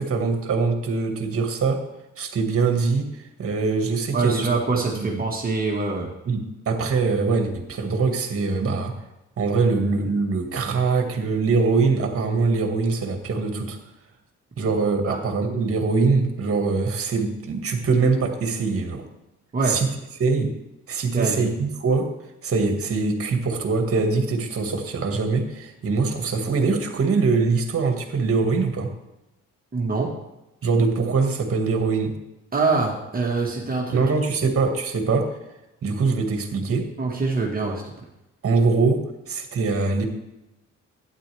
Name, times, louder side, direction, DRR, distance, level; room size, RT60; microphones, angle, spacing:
voice 1, 0.0-1.8 2.2-3.1 3.4-4.5 5.0-5.1 6.3-8.9 9.4-13.8 14.6-19.0 19.6-19.9 20.2-20.5 20.9-22.1 22.4-28.9 30.6-32.1 33.9-35.3 35.8-36.9 38.4-40.1, right 4 dB, 50° right, 5 dB, 1.8 m, -23 dB
voice 2, 4.1-6.1 15.1-15.2 19.5-19.8 21.1-21.5 29.7-30.1 32.5-34.0 37.0-37.8, right 3 dB, 30° right, -2 dB, 1.6 m, -24 dB
12.0 x 9.7 x 3.4 m, 0.96 s
cardioid pair, 90°, 30 cm